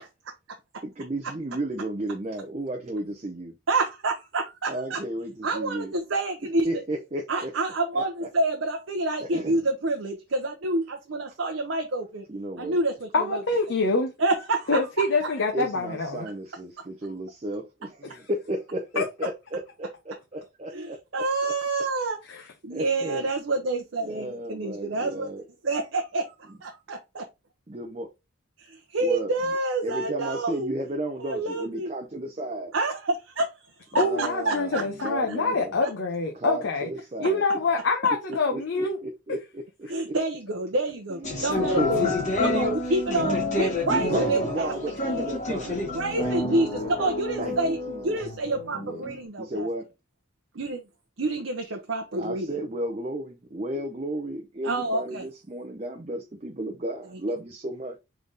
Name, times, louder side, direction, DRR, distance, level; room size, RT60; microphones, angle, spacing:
voice 1, 0.8-3.5 4.7-5.9 6.6-7.5 7.9-8.3 9.3-9.6 12.3-12.8 15.5-21.5 22.7-23.3 24.0-25.5 27.7-28.1 29.0-29.6 29.8-32.7 33.9-35.7 36.3-37.4 38.3-40.2 41.1-42.2 43.1-43.4 43.9-45.8 46.2-48.2 48.8-49.0 49.4-49.9 52.2-58.0, right 1 dB, 30° right, 0.6 m, -33 dB
voice 2, 3.7-5.0 5.4-6.7 7.3-12.2 12.6-13.4 14.2-15.0 20.7-22.2 22.6-25.3 25.6-26.4 26.6-27.2 28.6-30.7 31.2-31.9 32.7-33.5 33.9-35.1 35.8-35.9 39.9-42.1 42.4-44.7 45.0-45.2 45.7-47.8 48.0-49.7 50.5-50.8 51.2-52.5 54.6-55.3, right 2 dB, 70° right, 0.7 m, -28 dB
voice 3, 13.1-14.1 14.7-16.3 18.1-18.2 19.0-19.1 22.3-22.4 34.0-36.9 37.2-39.0, left 3 dB, 70° left, 0.8 m, -25 dB
sound 1, 41.2-49.2, left 2 dB, 35° left, 1.7 m, -28 dB
3.7 x 3.4 x 3.9 m
head